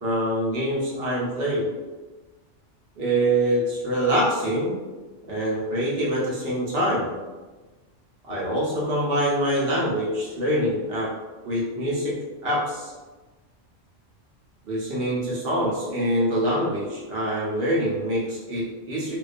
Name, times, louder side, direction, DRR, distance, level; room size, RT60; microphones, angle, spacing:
voice 1, 0.0-1.7 3.0-4.8 5.3-7.1 8.3-11.1 11.4-12.1 12.4-12.9 14.7-19.2, right 1 dB, 60° right, -5 dB, 0.8 m, -25 dB
2.3 x 2.3 x 2.4 m, 1.3 s
omnidirectional pair, 1.3 m